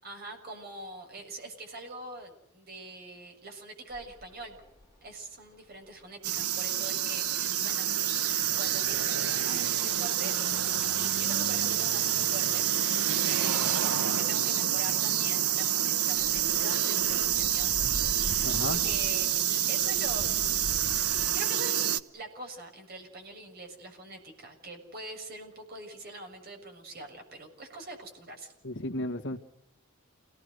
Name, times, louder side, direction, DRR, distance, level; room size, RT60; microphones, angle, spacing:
voice 1, 0.0-4.6 5.0-17.8 18.2-20.4 21.3-28.5, right 2 dB, 45° right, 4 dB, 6.8 m, -44 dB
sound 1, 3.9-21.3, left 1 dB, 15° right, 4.2 m, -45 dB
sound 2, 6.2-22.0, right 10 dB, 85° right, 1.2 m, -28 dB
voice 2, 18.4-18.8 28.6-29.4, left 1 dB, 55° left, 6 dB, 2.1 m, -33 dB
29.0 x 19.0 x 6.6 m, 0.77 s
head